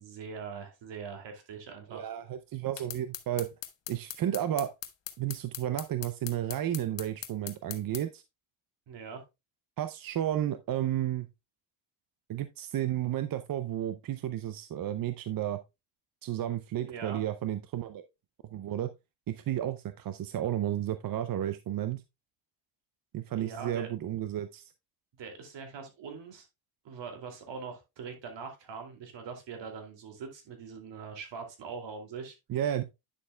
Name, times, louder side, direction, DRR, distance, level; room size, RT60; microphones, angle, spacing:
voice 1, 0.0-2.1 8.9-9.2 16.8-17.2 23.3-23.9 25.2-26.5 26.8-32.4, right 5 dB, 65° right, 2.6 m, -42 dB
voice 2, 1.9-3.5 3.9-4.7 5.2-8.2 9.8-11.3 12.3-15.6 16.2-18.0 18.5-18.9 19.3-22.0 23.1-24.7 32.5-32.8, right 11 dB, 45° right, 0.6 m, -32 dB
sound 1, 2.8-8.0, left 12 dB, 65° left, 1.1 m, -40 dB
9.9 x 6.6 x 2.2 m
cardioid pair, 100°, 48 cm